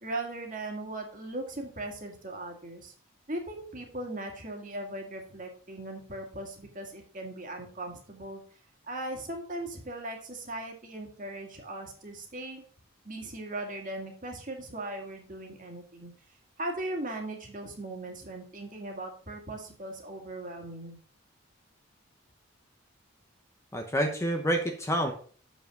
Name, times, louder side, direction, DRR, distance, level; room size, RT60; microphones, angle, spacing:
voice 1, 0.0-2.9 3.3-8.4 8.9-12.6 13.0-16.1 16.6-21.0, right 1 dB, 40° right, 2 dB, 2.0 m, -38 dB
voice 2, 23.7-25.1, equal, 15° left, 3 dB, 0.9 m, -28 dB
7.3 x 5.5 x 5.2 m, 0.43 s
head